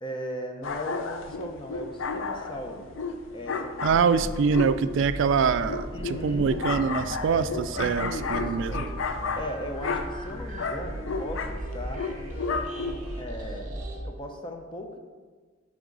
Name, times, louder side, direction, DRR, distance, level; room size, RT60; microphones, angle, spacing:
voice 1, 0.0-2.9 3.3-4.0 5.9-6.6 7.8-9.0 9.3-12.0 13.2-13.7 14.0-15.0, left 1 dB, 25° left, 4 dB, 0.7 m, -37 dB
sound 1, 0.6-13.2, left 4 dB, 70° left, 0.5 m, -33 dB
voice 2, 3.8-8.8, right 5 dB, 65° right, 12 dB, 0.3 m, -24 dB
sound 2, 4.0-14.0, right 1 dB, 40° right, 1.3 m, -37 dB
10.0 x 3.6 x 3.9 m, 1.4 s
head